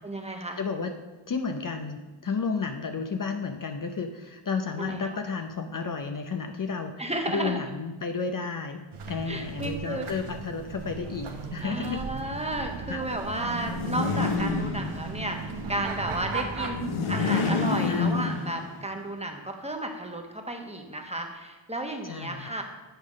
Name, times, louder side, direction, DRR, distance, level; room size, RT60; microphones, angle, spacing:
voice 1, 0.0-0.6 4.8-5.2 7.0-7.6 9.3-10.1 11.6-22.6, right 1 dB, 15° right, 3 dB, 1.2 m, -33 dB
voice 2, 0.6-0.9 1.3-7.0 7.3-12.0 12.9-13.0 17.9-18.2 22.1-22.5, left 5 dB, 45° left, 6 dB, 0.7 m, -32 dB
sound 1, 8.9-16.7, right 3 dB, 80° right, 1.0 m, -36 dB
sound 2, 13.6-15.3 16.6-18.8, left 4 dB, 85° left, 1.1 m, -28 dB
8.9 x 3.4 x 6.3 m, 1.2 s
cardioid pair, 50°, 48 cm